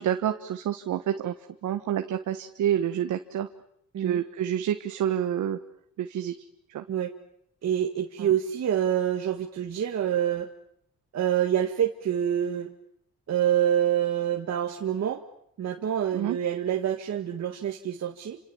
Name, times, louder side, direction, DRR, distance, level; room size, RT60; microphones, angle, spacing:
voice 1, 0.0-1.3 1.6-3.5 4.0-5.6 6.0-6.3 6.7-6.8 8.2-8.3 16.1-16.4, right 10 dB, 75° right, 7 dB, 1.5 m, -28 dB
voice 2, 7.6-10.5 11.1-12.7 13.3-15.2 15.6-18.4, right 10 dB, 60° right, 3 dB, 1.9 m, -26 dB
29.5 x 26.5 x 7.2 m, 0.70 s
cardioid pair, 90°, 30 cm